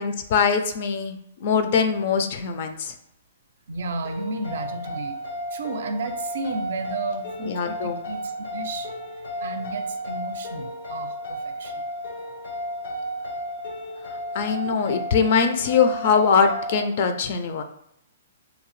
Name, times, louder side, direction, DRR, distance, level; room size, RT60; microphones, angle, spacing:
voice 1, 0.0-2.9 7.4-8.0 14.3-17.6, left 6 dB, 50° left, 7 dB, 0.4 m, -22 dB
voice 2, 3.7-5.2 5.5-11.8, right 2 dB, 70° right, 7 dB, 0.4 m, -33 dB
sound 1, 4.0-16.9, equal, 85° left, 0.7 m, -33 dB
2.7 x 2.0 x 3.1 m, 0.77 s
hypercardioid pair, 155°, 0 cm